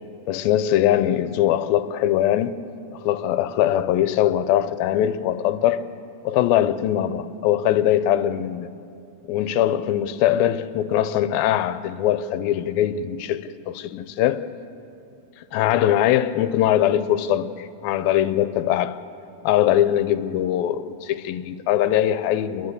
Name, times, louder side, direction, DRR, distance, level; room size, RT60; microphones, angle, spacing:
voice 1, 0.3-2.5 2.9-5.9 6.2-8.7 9.3-14.5 15.5-19.0 19.4-22.7, left 11 dB, 90° left, 2.5 m, -21 dB
30.0 x 11.0 x 8.1 m
omnidirectional pair, 4.2 m